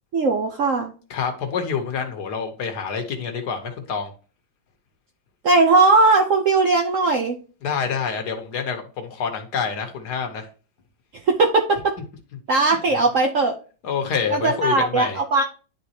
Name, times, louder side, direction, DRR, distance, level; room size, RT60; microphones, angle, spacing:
voice 1, 0.1-0.9 5.4-7.4 11.3-11.9 12.5-13.5 14.3-15.4, right 3 dB, 65° right, 2 dB, 0.8 m, -18 dB
voice 2, 1.1-4.1 7.6-10.5 13.8-15.2, left 6 dB, 65° left, 5 dB, 1.4 m, -27 dB
10.5 x 3.6 x 2.8 m, 0.37 s
omnidirectional pair, 2.0 m